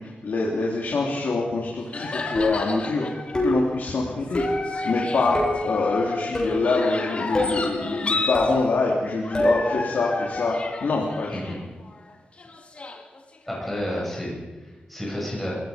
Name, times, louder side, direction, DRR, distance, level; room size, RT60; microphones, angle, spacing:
voice 1, 0.0-4.4 4.8-10.5 10.8-11.5, left 3 dB, 75° left, -3 dB, 3.4 m, -25 dB
sound 1, 1.2-1.3 1.9-3.6 4.3-8.6 9.2-12.1 12.4-13.7, left 3 dB, 40° left, 2.1 m, -31 dB
sound 2, 2.4-2.8 3.3-3.7 4.3-4.7 5.3-5.7 6.4-6.7 7.3-7.6 8.3-8.6 9.3-9.6, left 1 dB, 25° left, 7.8 m, -25 dB
voice 2, 13.5-15.5, left 1 dB, 5° left, -4 dB, 7.0 m, -31 dB
28.5 x 17.0 x 5.3 m, 1.2 s
wide cardioid pair, 160°, 3 cm